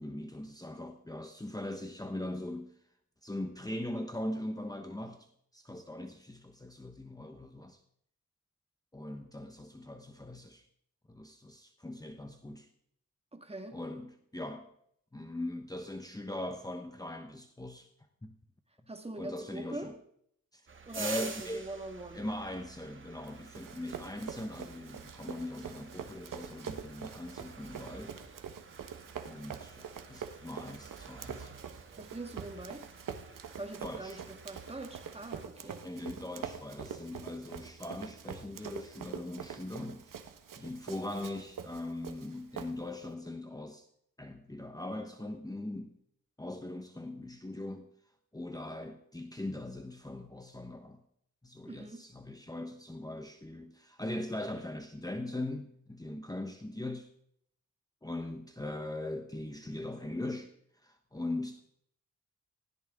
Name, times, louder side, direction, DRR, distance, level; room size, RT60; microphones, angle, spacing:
voice 1, 0.0-2.7 3.2-7.8 8.9-10.7 11.1-12.7 13.7-14.7 15.1-17.9 18.2-18.3 19.2-19.9 20.5-20.6 20.9-21.7 22.1-28.1 29.3-31.5 33.8-34.2 35.6-40.2 40.5-43.9 44.2-45.9 46.4-47.9 48.3-51.0 51.4-57.1 58.0-60.5 60.8-61.6, left 1 dB, 10° left, 1.2 m, -40 dB
voice 2, 13.3-13.8 18.9-20.0 20.9-22.2 32.0-32.9 33.6-35.9 51.7-52.1, right 2 dB, 20° right, 1.8 m, -43 dB
sound 1, 20.7-35.5, right 4 dB, 40° right, 2.0 m, -48 dB
Run, 23.2-43.1, right 7 dB, 80° right, 1.3 m, -45 dB
19.5 x 16.5 x 3.7 m
wide cardioid pair, 100°, 32 cm